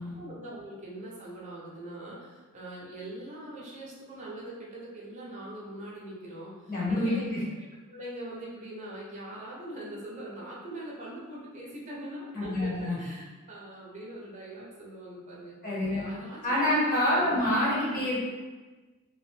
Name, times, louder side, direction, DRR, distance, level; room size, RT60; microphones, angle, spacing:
voice 1, 0.0-7.3 7.9-15.6 15.9-17.4, right 1 dB, 35° right, -5 dB, 0.6 m, -42 dB
voice 2, 6.7-7.4 12.3-13.0 15.6-16.0 16.4-18.3, left 1 dB, 45° left, -7 dB, 1.2 m, -27 dB
2.9 x 2.6 x 3.2 m, 1.3 s
head